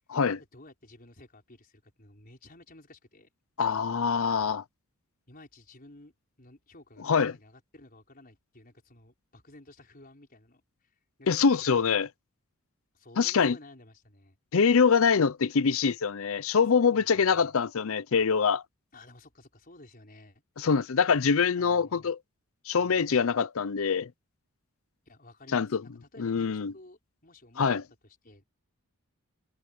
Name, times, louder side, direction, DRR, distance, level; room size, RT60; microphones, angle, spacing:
voice 1, 0.5-3.3 4.3-4.5 5.3-6.1 6.4-11.5 12.9-14.4 16.7-17.5 18.9-20.7 21.1-21.2 21.6-22.1 22.8-23.1 25.0-27.8 28.0-28.4, left 2 dB, 40° left, 5.1 m, -54 dB
voice 2, 3.6-4.6 7.1-7.3 11.3-12.1 13.2-13.6 14.5-18.6 20.6-22.2 22.7-24.1 25.5-25.8 26.2-26.7 27.6-27.8, left 5 dB, 65° left, 0.6 m, -24 dB
head